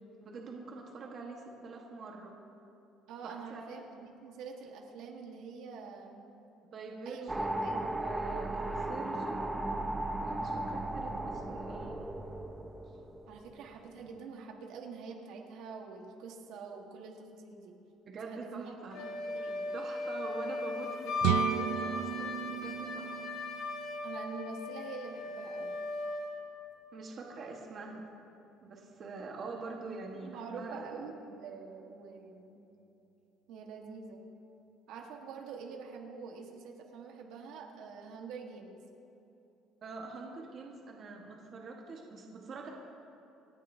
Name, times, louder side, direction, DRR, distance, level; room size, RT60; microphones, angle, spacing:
voice 1, 0.2-2.4 3.2-3.8 6.7-7.5 7.9-9.5 10.2-12.0 18.1-19.0 19.7-23.2 26.9-28.1 28.6-31.0 39.8-42.7, right 3 dB, 35° right, 0 dB, 1.3 m, -44 dB
voice 2, 3.1-6.2 7.0-8.0 13.3-17.7 18.3-19.7 24.0-25.7 29.8-30.0 30.2-32.6 33.5-34.3 34.9-38.8, right 5 dB, 65° right, 1 dB, 1.4 m, -46 dB
sound 1, 7.3-13.7, right 1 dB, 5° right, 0.6 m, -36 dB
Wind instrument woodwind instrument, 18.9-26.3, left 3 dB, 75° left, 2.4 m, -37 dB
sound 2, 21.2-25.0, right 14 dB, 80° right, 0.3 m, -35 dB
27.0 x 10.5 x 2.7 m, 2.9 s
cardioid pair, 165°, 0 cm